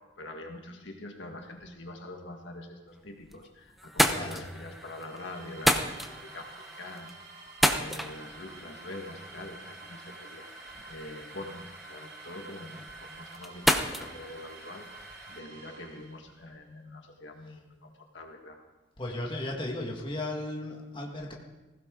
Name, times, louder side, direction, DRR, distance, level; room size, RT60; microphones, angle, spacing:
voice 1, 0.0-14.9 15.3-18.6, left 2 dB, 65° left, 3 dB, 1.7 m, -45 dB
sound 1, 2.9-3.5 3.8-15.4, equal, ahead, 0.8 m, -33 dB
voice 2, 4.0-4.4 19.0-21.3, left 1 dB, 25° left, -1 dB, 1.8 m, -35 dB
sound 2, 4.6-16.5, right 4 dB, 40° right, 4.2 m, -50 dB
19.5 x 16.0 x 3.9 m, 1.1 s
head